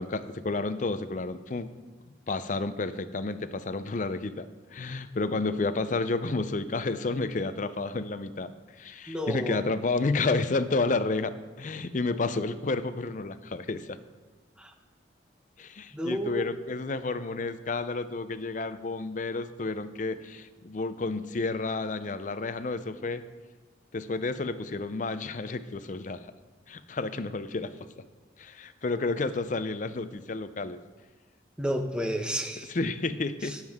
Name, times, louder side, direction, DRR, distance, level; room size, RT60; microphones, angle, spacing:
voice 1, 0.0-1.7 2.3-4.5 4.7-8.5 8.8-14.0 15.6-23.2 23.9-26.3 26.7-27.7 28.4-30.8 32.7-33.6, left 3 dB, 40° left, 12 dB, 0.5 m, -31 dB
voice 2, 9.1-9.6 14.6-14.7 15.9-16.4 31.6-32.7 33.4-33.6, equal, 5° right, 5 dB, 0.8 m, -31 dB
17.0 x 7.3 x 3.6 m, 1.3 s
head